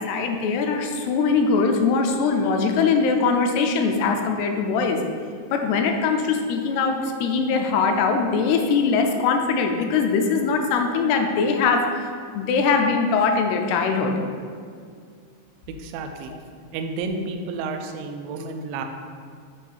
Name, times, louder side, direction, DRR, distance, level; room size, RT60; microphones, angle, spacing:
voice 1, 0.0-5.0 5.5-14.1, left 5 dB, 80° left, 4 dB, 2.6 m, -22 dB
voice 2, 15.7-16.3 16.7-18.8, right 3 dB, 90° right, 5 dB, 2.0 m, -31 dB
7.9 x 4.7 x 4.6 m, 2.1 s
omnidirectional pair, 4.7 m